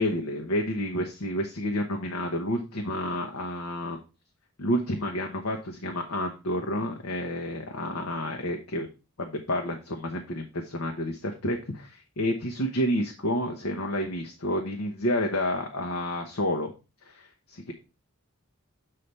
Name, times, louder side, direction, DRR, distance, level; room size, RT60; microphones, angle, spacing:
voice 1, 0.0-4.0 4.6-8.9 9.2-16.7 17.0-17.7, left 1 dB, 80° left, 1 dB, 1.0 m, -30 dB
7.5 x 3.3 x 5.4 m, 0.30 s
head